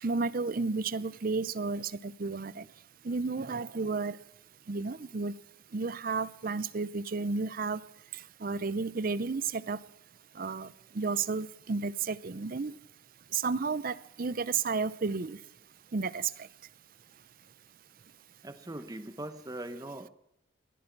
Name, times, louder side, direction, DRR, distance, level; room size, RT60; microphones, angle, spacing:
voice 1, 0.0-2.7 3.0-4.2 4.7-5.3 5.7-7.8 8.4-9.8 10.4-12.8 13.3-15.4 15.9-16.3, right 4 dB, 45° right, 18 dB, 0.5 m, -32 dB
voice 2, 18.4-20.1, right 1 dB, 20° right, 10 dB, 0.9 m, -41 dB
21.0 x 14.5 x 4.6 m, 0.80 s
head